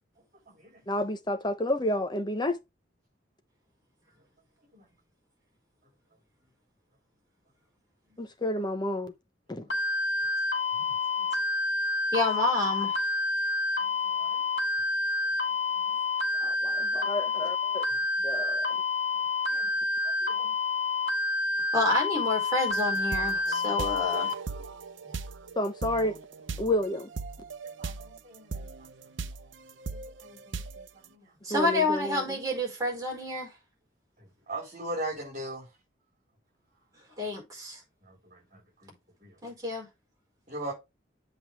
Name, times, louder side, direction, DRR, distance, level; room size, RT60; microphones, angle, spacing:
voice 1, 0.9-2.6 8.2-9.1 9.5-9.6 16.4-17.9 18.2-18.8 25.6-26.2 26.6-27.1 31.5-32.4, left 1 dB, 25° left, 0.9 m, -30 dB
sound 1, 9.7-24.3, left 3 dB, 65° left, 2.3 m, -28 dB
voice 2, 10.8-11.3 14.0-14.4 16.4-16.7 17.9-18.0 19.5-19.7 20.0-20.5 23.2-23.6 24.5-24.7 27.8-28.7 29.9-31.3 34.2-35.7 38.0-38.9 39.2-39.3 40.5-40.7, right 1 dB, 40° right, 4.5 m, -41 dB
voice 3, 12.1-13.0 21.7-24.3 31.4-33.5 37.2-37.8 39.4-39.9, left 2 dB, 20° right, 4.6 m, -29 dB
sound 2, 22.7-28.2 28.5-30.9, right 4 dB, 80° right, 0.8 m, -39 dB
7.9 x 5.5 x 3.6 m
head